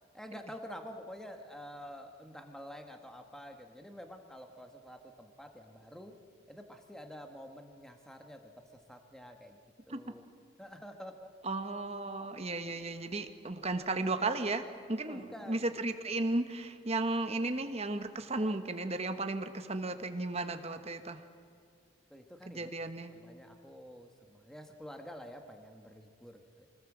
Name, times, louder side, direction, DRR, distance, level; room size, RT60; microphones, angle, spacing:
voice 1, 0.1-6.1 6.5-9.6 9.9-10.3 10.6-11.3 15.1-15.6 22.1-22.7 23.1-26.7, equal, 5° left, 5 dB, 1.4 m, -48 dB
voice 2, 11.4-21.2 22.5-23.1, right 2 dB, 30° right, 8 dB, 1.3 m, -34 dB
24.5 x 19.5 x 7.4 m, 2.3 s
head